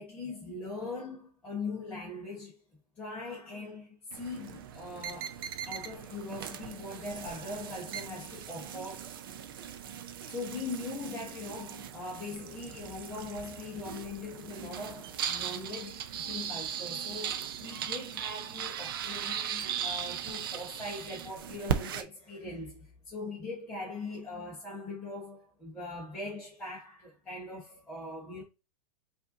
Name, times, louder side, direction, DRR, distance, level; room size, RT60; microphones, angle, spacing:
voice 1, 0.0-2.6 3.0-9.2 10.3-28.4, left 3 dB, 5° left, 0.9 m, -41 dB
sound 1, 4.1-22.0, right 8 dB, 35° right, 0.4 m, -38 dB
5.2 x 2.6 x 2.6 m
supercardioid pair, 175°, 20 cm